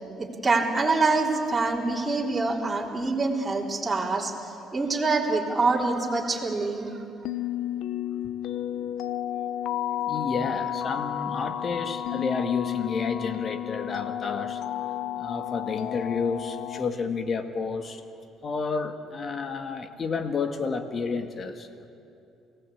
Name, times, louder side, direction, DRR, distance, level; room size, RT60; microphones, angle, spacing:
voice 1, 0.2-7.0, right 3 dB, 20° right, -3 dB, 3.7 m, -25 dB
sound 1, 7.2-16.9, left 11 dB, 75° left, 0.9 m, -32 dB
voice 2, 10.0-14.9 15.2-18.0 18.4-21.9, left 4 dB, 45° left, 7 dB, 2.0 m, -31 dB
28.5 x 18.0 x 8.6 m, 2.7 s
cardioid pair, 90°, 0 cm